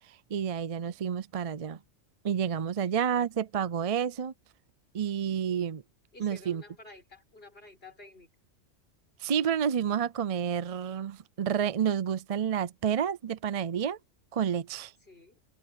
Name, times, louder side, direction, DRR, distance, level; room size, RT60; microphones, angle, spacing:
voice 1, 0.3-1.8 2.2-4.3 4.9-5.8 6.2-6.6 9.2-14.0 14.3-14.9, right 8 dB, 45° right, 0.4 m, -29 dB
voice 2, 6.1-8.3 15.0-15.4, left 2 dB, 50° left, 6.5 m, -51 dB
open air
omnidirectional pair, 1.3 m